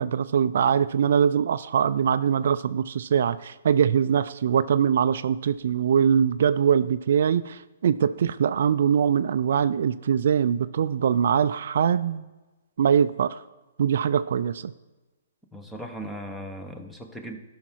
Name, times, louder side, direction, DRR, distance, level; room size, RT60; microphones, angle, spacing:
voice 1, 0.0-12.3 12.8-13.4 13.8-14.7, right 8 dB, 65° right, 13 dB, 0.4 m, -22 dB
voice 2, 15.5-17.4, equal, 5° left, 5 dB, 1.0 m, -37 dB
12.5 x 5.7 x 4.5 m, 1.1 s
hypercardioid pair, 145°, 0 cm